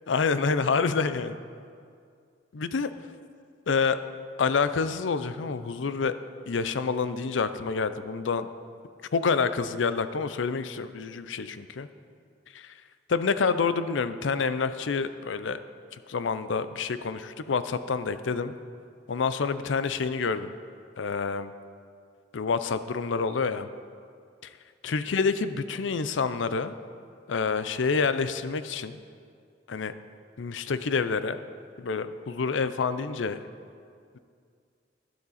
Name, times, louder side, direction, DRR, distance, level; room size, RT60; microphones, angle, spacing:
voice 1, 0.1-1.4 2.5-2.9 3.7-4.0 4.4-6.1 6.5-8.5 9.1-11.9 12.5-12.7 13.1-15.6 16.1-18.5 19.1-20.5 21.0-21.5 22.3-23.7 24.8-26.7 27.3-29.0 29.7-29.9 30.4-31.4 31.8-33.4, left 5 dB, 85° left, 12 dB, 0.5 m, -27 dB
12.0 x 11.5 x 4.2 m, 2.2 s
head